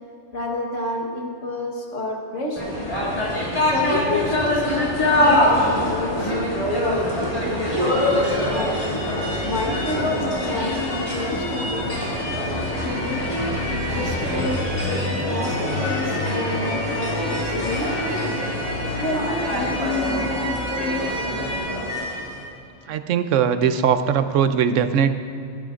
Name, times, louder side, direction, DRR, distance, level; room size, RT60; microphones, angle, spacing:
voice 1, 0.3-2.7 3.6-6.5 6.8-8.8 9.4-12.0 12.8-13.6 13.8-18.3 19.0-21.3, left 2 dB, 75° left, 0 dB, 1.7 m, -30 dB
sound 1, 2.6-22.4, left 1 dB, 25° left, 2.8 m, -24 dB
voice 2, 22.9-25.1, right 7 dB, 80° right, 10 dB, 1.0 m, -20 dB
19.0 x 11.5 x 2.5 m, 2.6 s
omnidirectional pair, 1.3 m